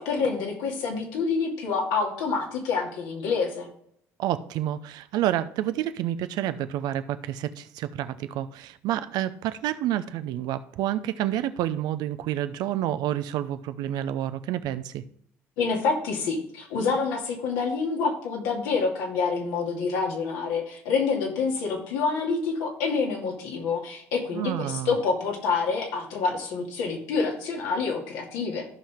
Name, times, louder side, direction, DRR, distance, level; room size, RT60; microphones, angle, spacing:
voice 1, 0.0-3.7 15.6-28.7, left 4 dB, 80° left, 0 dB, 2.4 m, -27 dB
voice 2, 4.2-15.0 24.3-24.9, right 12 dB, 70° right, 12 dB, 0.7 m, -29 dB
14.5 x 5.7 x 3.6 m, 0.67 s
hypercardioid pair, 60°, 7 cm